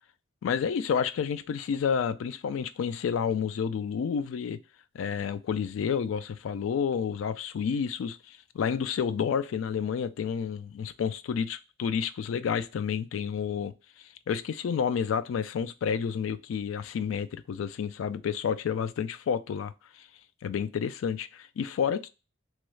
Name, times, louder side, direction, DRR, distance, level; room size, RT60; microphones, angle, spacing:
voice 1, 0.4-4.6 4.9-13.7 14.3-19.7 20.4-22.1, left 7 dB, 80° left, 0.3 m, -30 dB
3.0 x 2.3 x 3.1 m
head